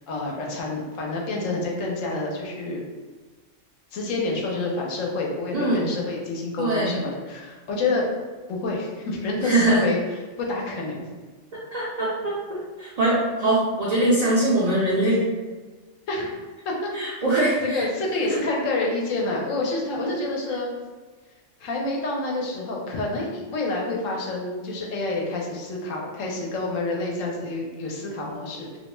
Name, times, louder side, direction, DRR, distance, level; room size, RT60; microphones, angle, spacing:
voice 1, 0.0-2.8 3.9-8.1 8.5-10.0 10.4-11.1 16.1-16.3 16.6-16.9 17.6-20.7 21.6-28.8, left 2 dB, 90° left, -1 dB, 1.0 m, -28 dB
voice 2, 5.5-5.9 6.6-7.0 9.4-9.8 11.7-15.2 16.9-17.9 18.3-18.4, right 1 dB, 65° right, -6 dB, 0.4 m, -22 dB
2.5 x 2.2 x 3.0 m, 1.3 s
omnidirectional pair, 1.3 m